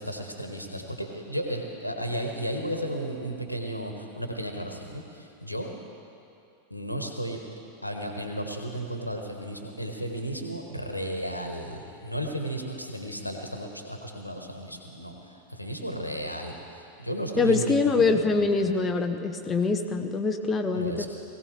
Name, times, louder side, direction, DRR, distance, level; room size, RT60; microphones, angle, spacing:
voice 1, 0.0-5.7 6.7-7.4 7.8-18.4 20.7-21.1, right 1 dB, 90° left, 3 dB, 1.3 m, -34 dB
voice 2, 17.4-21.1, left 4 dB, 15° left, 5 dB, 0.8 m, -24 dB
19.5 x 16.0 x 3.3 m, 2.7 s
figure-of-eight pair, 90°, 0 cm